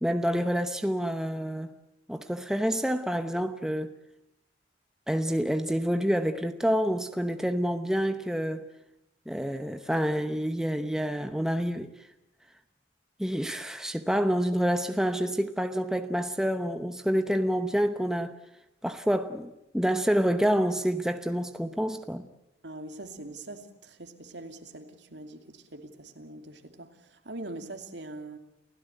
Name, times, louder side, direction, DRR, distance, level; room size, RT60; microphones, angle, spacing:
voice 1, 0.0-1.7 2.1-3.9 5.1-8.6 9.3-11.9 13.2-18.4 18.8-22.3, equal, 5° right, 8 dB, 0.9 m, -28 dB
voice 2, 22.6-28.4, right 2 dB, 70° right, 6 dB, 2.7 m, -43 dB
29.5 x 16.0 x 8.0 m, 0.89 s
head